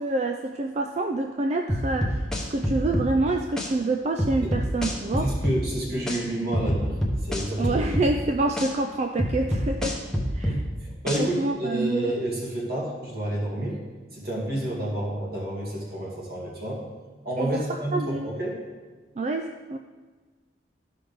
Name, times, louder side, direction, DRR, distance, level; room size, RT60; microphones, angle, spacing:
voice 1, 0.0-2.1 2.5-5.3 7.6-10.0 10.3-10.5 11.2-12.1 17.4-17.6 17.9-18.3 19.2-19.8, right 2 dB, 35° right, 5 dB, 0.3 m, -27 dB
sound 1, 1.7-3.1 3.6-3.7 4.2-5.6 6.1-6.2 6.5-8.1 8.6-8.7 9.2-10.6 11.1-11.2, equal, 5° left, 0.9 m, -26 dB
voice 2, 5.2-7.0 7.2-7.8 10.5-13.8 14.1-16.8 17.2-18.6, right 1 dB, 55° right, -4 dB, 2.3 m, -29 dB
13.0 x 5.5 x 3.4 m, 1.4 s
head